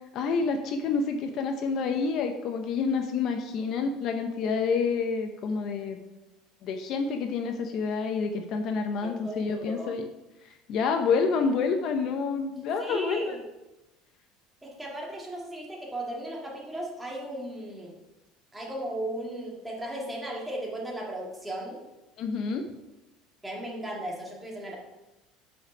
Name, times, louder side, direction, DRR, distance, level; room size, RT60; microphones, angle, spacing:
voice 1, 0.1-6.0 6.6-10.0 10.4-13.4 22.2-22.7, left 5 dB, 50° left, 5 dB, 0.7 m, -28 dB
voice 2, 9.0-9.9 12.8-13.4 14.6-18.0 18.5-21.8 23.4-24.8, right 1 dB, 10° right, -2 dB, 1.8 m, -36 dB
6.9 x 5.2 x 5.1 m, 1.0 s
cardioid pair, 145°, 0 cm